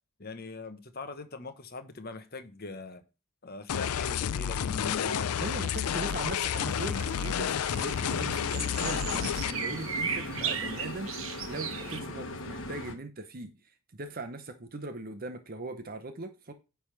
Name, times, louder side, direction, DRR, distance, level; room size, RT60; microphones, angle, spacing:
voice 1, 0.2-3.0 3.4-5.4, left 3 dB, 45° left, 1.0 m, -41 dB
sound 1, 3.7-9.5, left 8 dB, 80° left, 0.4 m, -30 dB
voice 2, 5.4-16.5, right 2 dB, 40° right, 0.7 m, -40 dB
sound 2, 6.7-12.0, right 7 dB, 65° right, 1.1 m, -37 dB
sound 3, 7.7-12.9, left 2 dB, 60° left, 1.3 m, -39 dB
9.7 x 3.4 x 5.9 m
head